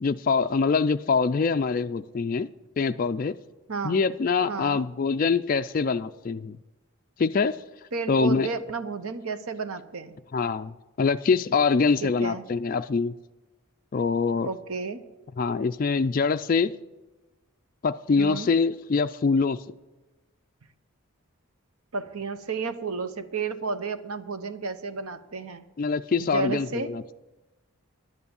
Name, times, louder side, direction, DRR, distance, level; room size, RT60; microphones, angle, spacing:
voice 1, 0.0-2.5 2.8-3.3 3.8-6.6 7.2-7.6 8.1-8.5 10.3-13.1 13.9-14.5 15.4-16.7 17.8-19.6 25.8-27.1, left 4 dB, 40° left, 8 dB, 0.3 m, -24 dB
voice 2, 3.7-4.0 4.5-4.9 7.9-10.2 12.0-12.4 14.4-15.0 18.2-18.5 21.9-25.6 26.2-26.9, right 4 dB, 80° right, 11 dB, 0.9 m, -32 dB
11.0 x 9.5 x 7.0 m, 1.1 s
head